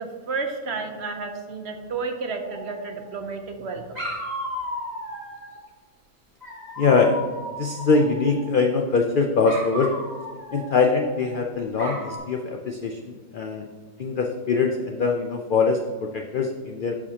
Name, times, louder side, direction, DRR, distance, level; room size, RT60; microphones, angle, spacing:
voice 1, 0.0-4.0, right 4 dB, 55° right, 4 dB, 0.9 m, -31 dB
Dog, 2.4-3.3 3.9-5.6 6.4-8.5 9.4-11.3 11.8-12.2, equal, 25° right, 2.4 m, -35 dB
voice 2, 6.8-7.2 7.6-9.9 10.5-13.7 14.0-16.9, left 4 dB, 85° left, 3 dB, 0.4 m, -23 dB
11.5 x 4.8 x 2.8 m, 1.4 s
omnidirectional pair, 1.5 m